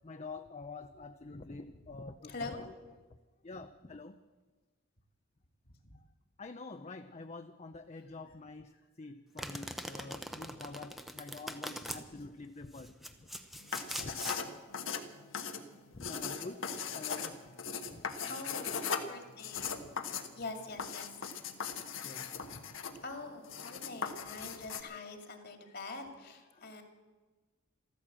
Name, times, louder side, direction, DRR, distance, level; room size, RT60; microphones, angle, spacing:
voice 1, 0.0-2.5 3.4-4.2 6.4-8.7 9.0-12.9 13.2-13.3 14.0-14.1 15.2-15.3 15.9-17.4 17.7-18.3 21.7-22.6 26.5-26.7, left 3 dB, 35° left, 7 dB, 0.6 m, -47 dB
voice 2, 2.2-2.7 5.8-6.0 8.1-8.2 8.7-8.8 11.8-11.9 18.3-19.9 20.3-21.3 22.5-22.6 23.0-26.8, left 3 dB, 50° left, 5 dB, 2.2 m, -45 dB
Domestic sounds home sounds, 9.4-12.0 12.7-14.4, equal, ahead, 0.8 m, -42 dB
sound 1, 13.6-24.8, left 6 dB, 70° left, 1.3 m, -39 dB
14.0 x 13.5 x 7.4 m, 1.3 s
head